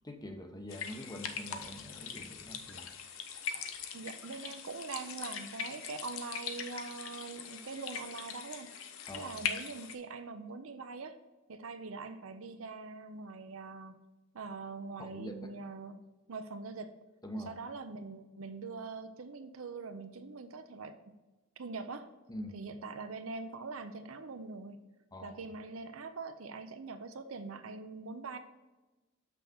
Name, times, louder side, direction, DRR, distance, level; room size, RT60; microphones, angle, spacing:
voice 1, 0.0-2.9 3.3-3.4 9.1-9.4 15.0-15.3 17.2-17.5 22.3-22.6 25.1-25.4, left 1 dB, 20° left, 5 dB, 0.8 m, -44 dB
sound 1, 0.7-9.9, left 6 dB, 80° left, 0.8 m, -41 dB
voice 2, 3.9-8.7 9.1-11.2 11.5-14.0 14.3-16.0 16.3-16.9 17.3-21.2 21.6-22.1 22.5-24.8 25.2-28.4, right 4 dB, 85° right, 9 dB, 0.7 m, -43 dB
6.9 x 6.0 x 3.6 m, 1.1 s
head